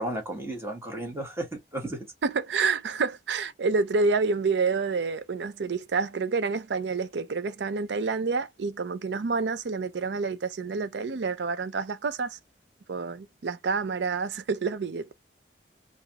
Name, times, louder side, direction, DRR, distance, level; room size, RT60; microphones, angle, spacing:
voice 1, 0.0-2.1, right 1 dB, 15° right, 1.6 m, -33 dB
voice 2, 2.2-12.4 12.9-15.1, right 4 dB, 75° right, 0.5 m, -28 dB
3.9 x 2.5 x 2.8 m
head